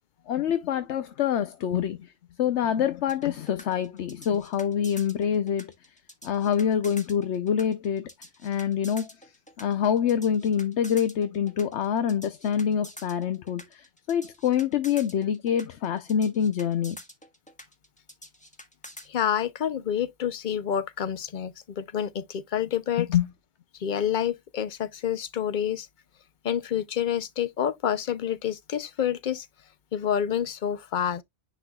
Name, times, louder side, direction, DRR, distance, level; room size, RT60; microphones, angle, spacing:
voice 1, 0.3-2.1 2.4-5.7 6.2-8.1 8.4-9.1 9.6-17.0 23.0-23.3, left 8 dB, 75° left, 1.0 m, -26 dB
sound 1, 3.1-19.1, equal, 5° left, 1.3 m, -47 dB
voice 2, 19.1-23.1 23.7-25.9 26.4-29.5 29.9-31.2, left 9 dB, 50° left, 0.7 m, -28 dB
9.8 x 4.8 x 2.3 m
omnidirectional pair, 1.2 m